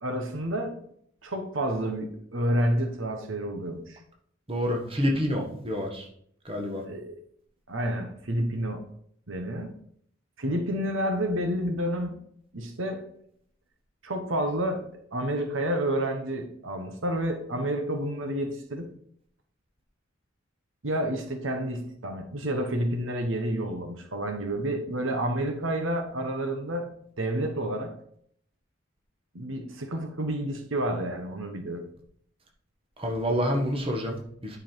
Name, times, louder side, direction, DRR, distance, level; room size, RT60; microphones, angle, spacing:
voice 1, 0.0-0.8 1.2-4.0 6.8-7.2 7.7-8.8 9.3-9.7 10.4-12.1 12.5-13.1 14.0-18.9 20.8-26.9 27.2-27.9 29.3-31.8, right 1 dB, 70° right, 5 dB, 1.2 m, -29 dB
voice 2, 4.5-6.1 6.4-6.8 33.0-34.6, equal, 25° right, 1 dB, 1.5 m, -28 dB
10.0 x 5.6 x 4.6 m, 0.66 s
head